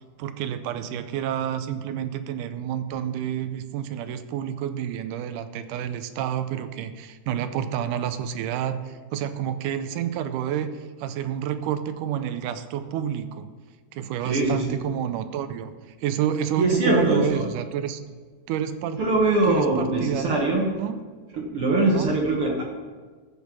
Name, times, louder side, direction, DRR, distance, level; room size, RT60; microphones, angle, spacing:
voice 1, 0.2-13.5 13.9-15.7 16.0-18.0 18.5-19.1 19.5-20.4 20.8-21.0 21.9-22.2, right 9 dB, 80° right, 10 dB, 2.2 m, -29 dB
voice 2, 14.2-14.7 16.6-17.4 19.0-20.7 21.3-22.6, right 2 dB, 55° right, 0 dB, 1.7 m, -22 dB
14.5 x 5.3 x 6.1 m, 1.4 s
omnidirectional pair, 3.6 m